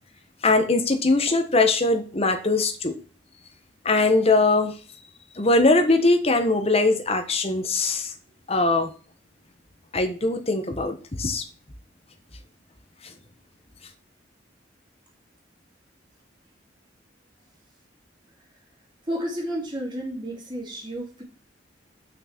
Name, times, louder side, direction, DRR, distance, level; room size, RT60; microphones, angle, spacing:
voice 1, 0.4-2.9 3.8-4.7 5.4-8.1 8.5-8.9 9.9-11.4, left 2 dB, 35° left, 6 dB, 1.3 m, -21 dB
voice 2, 19.0-21.2, equal, 25° right, -2 dB, 3.4 m, -31 dB
6.6 x 6.2 x 6.0 m, 0.37 s
head